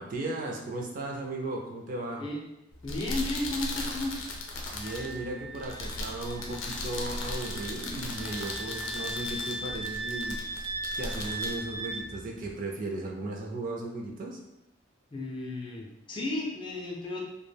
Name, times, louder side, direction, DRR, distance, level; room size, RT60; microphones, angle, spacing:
voice 1, 0.0-2.2 4.7-10.5 10.9-14.4, right 2 dB, 45° right, 0 dB, 0.4 m, -36 dB
sound 1, 2.7-12.5, left 2 dB, 80° left, 0.5 m, -37 dB
voice 2, 2.8-4.1 15.1-17.2, left 2 dB, 25° left, -1 dB, 0.4 m, -34 dB
Wind instrument woodwind instrument, 4.7-12.0, right 2 dB, 75° right, 0.9 m, -38 dB
2.2 x 2.1 x 3.2 m, 0.92 s
head